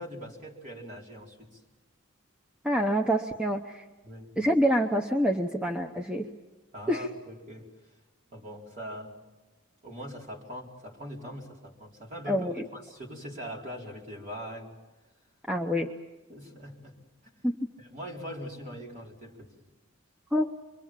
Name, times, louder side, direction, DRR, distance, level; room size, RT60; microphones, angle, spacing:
voice 1, 0.0-1.6 4.0-4.3 6.7-7.7 8.3-9.1 9.8-14.7 16.3-16.9 17.2-17.3 17.8-19.5, equal, 40° right, -2 dB, 4.3 m, -42 dB
voice 2, 2.6-3.9 4.4-6.3 6.9-7.1 12.3-12.6 15.5-15.9 17.4-17.6 20.3-20.5, equal, 5° right, 2 dB, 0.8 m, -26 dB
26.5 x 23.0 x 7.5 m, 1.2 s
head